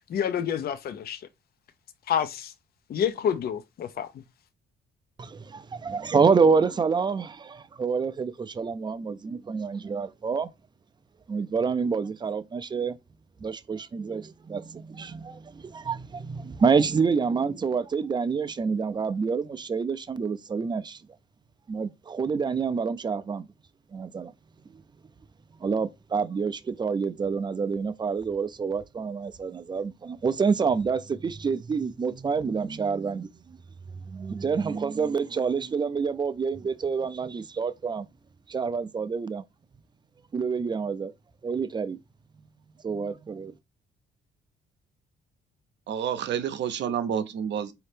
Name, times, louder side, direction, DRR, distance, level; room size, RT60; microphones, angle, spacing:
voice 1, 0.1-1.2 2.1-2.5 2.9-4.1, left 8 dB, 50° left, 0.5 m, -28 dB
voice 2, 5.2-10.5 11.3-13.0 13.4-21.0 21.7-23.5 23.9-24.3 25.6-33.6 34.1-38.1 38.5-39.4 40.3-41.1 41.4-42.0 42.8-43.5, right 5 dB, 20° right, 0.4 m, -27 dB
voice 3, 45.9-47.7, right 8 dB, 65° right, 0.6 m, -29 dB
4.1 x 2.8 x 3.3 m
cardioid pair, 90°, 20 cm